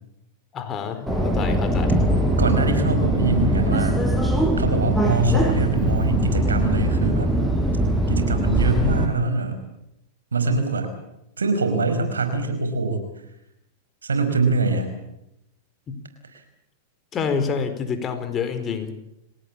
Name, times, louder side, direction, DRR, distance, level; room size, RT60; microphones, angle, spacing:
voice 1, 0.5-2.0 15.9-16.0 17.1-18.9, left 6 dB, 30° left, 8 dB, 4.5 m, -27 dB
Subway metro underground, 1.1-9.1, right 1 dB, 5° right, 5.8 m, -21 dB
voice 2, 2.4-4.0 4.6-7.3 8.1-9.6 10.3-10.9 11.4-13.0 14.0-14.9 16.3-16.4, right 3 dB, 90° right, 7 dB, 5.0 m, -23 dB
27.5 x 17.5 x 8.7 m, 0.84 s
hypercardioid pair, 105°, 0 cm